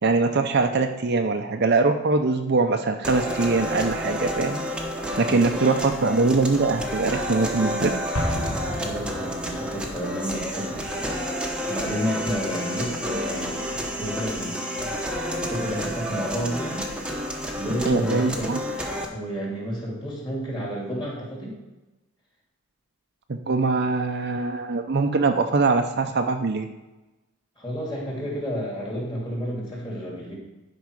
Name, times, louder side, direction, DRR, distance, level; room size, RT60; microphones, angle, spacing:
voice 1, 0.0-4.6 5.2-7.9 17.8-18.6 23.3-26.7, right 3 dB, 45° right, 5 dB, 0.6 m, -22 dB
sound 1, 3.0-19.0, equal, 5° right, 0.9 m, -30 dB
voice 2, 5.3-5.7 8.7-11.1 11.5-16.9 17.5-18.7 19.1-21.6 27.6-30.3, equal, 20° left, -4 dB, 2.9 m, -31 dB
Explosion, 8.1-9.9, equal, 85° left, 1.5 m, -30 dB
10.5 x 5.4 x 4.8 m, 1.1 s
head